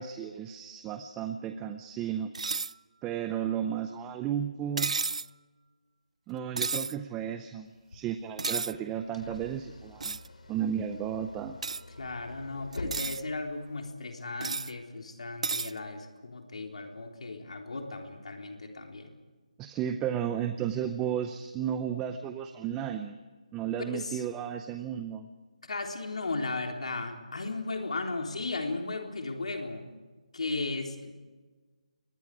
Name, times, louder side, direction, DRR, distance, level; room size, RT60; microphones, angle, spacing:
voice 1, 0.0-2.3 3.0-5.0 6.3-10.2 10.5-11.6 19.6-23.2 23.5-25.3, right 9 dB, 10° right, 8 dB, 0.6 m, -33 dB
sound 1, 2.3-2.7 4.8-5.3 6.6-6.9 8.4-8.7 10.0-10.3 11.6-11.8 12.7-13.2 14.4-14.7 15.4-15.7, right 4 dB, 65° right, 0.6 m, -32 dB
sound 2, 7.7-13.9, left 2 dB, 85° left, 4.8 m, -46 dB
voice 2, 12.0-19.1 23.9-24.2 25.6-29.9 30.3-31.1, left 3 dB, 65° left, 3 dB, 3.7 m, -36 dB
27.5 x 22.5 x 4.9 m, 1.4 s
hypercardioid pair, 170°, 4 cm